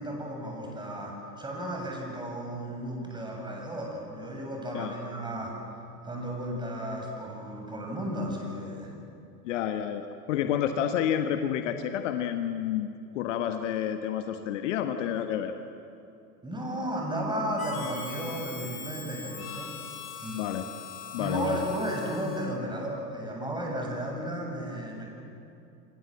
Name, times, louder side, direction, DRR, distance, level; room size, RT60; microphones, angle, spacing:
voice 1, 0.0-5.6 6.0-8.9 16.4-19.7 20.2-20.4 21.2-25.1, right 1 dB, 10° right, 0 dB, 7.4 m, -34 dB
voice 2, 9.4-12.9 13.1-15.5 20.3-20.7 21.1-21.6, left 9 dB, 50° left, 7 dB, 1.5 m, -29 dB
Harmonica, 17.6-22.6, left 6 dB, 65° left, 3.8 m, -41 dB
28.0 x 26.5 x 7.6 m, 2.8 s
figure-of-eight pair, 90°, 48 cm